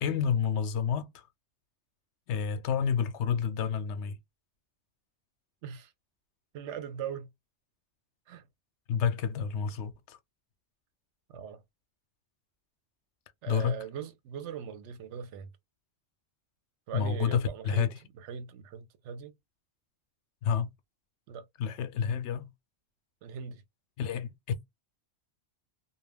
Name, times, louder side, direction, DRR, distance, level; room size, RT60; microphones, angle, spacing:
voice 1, 0.0-1.2 2.3-4.2 8.9-10.2 13.5-13.8 16.9-18.0 20.4-20.7 21.6-22.5 24.0-24.7, left 7 dB, 80° left, 0.9 m, -29 dB
voice 2, 5.6-5.9 6.5-7.3 8.3-8.4 11.3-11.6 13.4-15.5 16.9-17.9 18.2-19.3 21.3-21.4 23.2-23.6, right 7 dB, 85° right, 0.9 m, -40 dB
2.3 x 2.1 x 3.3 m
omnidirectional pair, 1.2 m